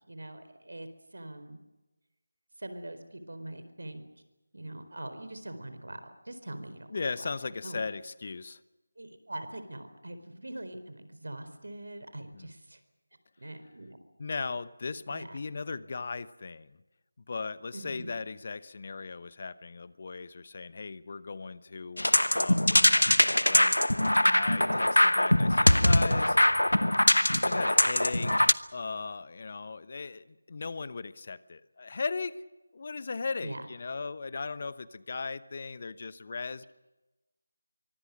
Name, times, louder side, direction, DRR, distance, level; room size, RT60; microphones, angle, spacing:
voice 1, 0.0-1.6 2.6-4.0 4.5-7.3 7.6-7.8 9.0-12.8 13.4-14.0 15.1-15.4 17.7-18.1 24.6-24.9 33.4-33.6, right 1 dB, 65° right, 10 dB, 4.3 m, -43 dB
voice 2, 6.9-8.6 12.3-12.5 14.2-16.8 17.3-22.1 22.3-23.8 24.2-26.4 27.4-32.4 32.7-36.6, left 4 dB, 40° left, 16 dB, 1.0 m, -37 dB
sound 1, 22.0-28.5, left 1 dB, 85° left, 0.9 m, -23 dB
24.5 x 24.5 x 6.4 m, 1.0 s
figure-of-eight pair, 160°, 0 cm